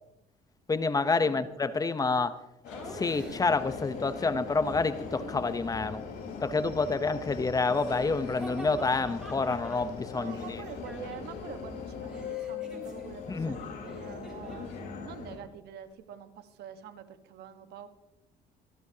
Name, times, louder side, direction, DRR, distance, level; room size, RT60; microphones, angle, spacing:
voice 1, 0.7-2.4 2.9-6.0 6.4-10.6 13.3-13.6, left 3 dB, 20° left, 13 dB, 0.8 m, -28 dB
Subway metro underground, 2.6-15.4, left 5 dB, 80° left, 4.4 m, -40 dB
Laughter, 2.7-3.7 4.7-5.8 7.6-11.4 11.7-14.8, right 1 dB, 5° right, 4.0 m, -48 dB
voice 2, 10.1-17.9, right 9 dB, 75° right, 9 dB, 1.3 m, -46 dB
25.5 x 12.5 x 2.8 m, 0.92 s
cardioid pair, 110°, 17 cm